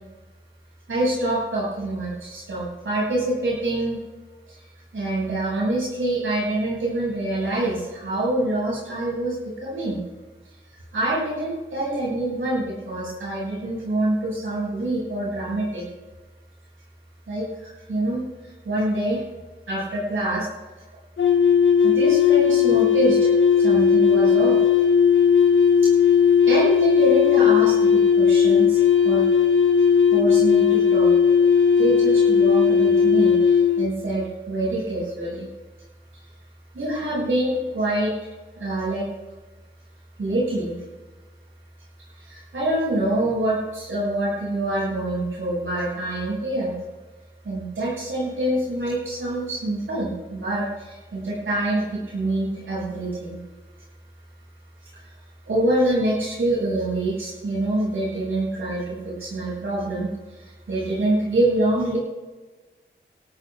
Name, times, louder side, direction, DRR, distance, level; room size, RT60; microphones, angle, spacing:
voice 1, 0.9-4.0 4.5-4.6 4.9-10.0 10.9-15.8 17.3-19.2 19.7-20.5 21.8-23.3 23.6-24.6 25.8-26.1 26.5-29.3 29.8-31.1 31.8-35.5 36.7-38.1 38.6-39.1 40.2-40.8 42.1-46.7 47.4-53.4 54.9-55.0 55.5-62.0, right 1 dB, 90° right, -6 dB, 6.2 m, -26 dB
sound 1, 21.2-33.9, left 7 dB, 70° left, 0.9 m, -17 dB
29.0 x 13.0 x 2.5 m, 1.2 s
wide cardioid pair, 75°, 20 cm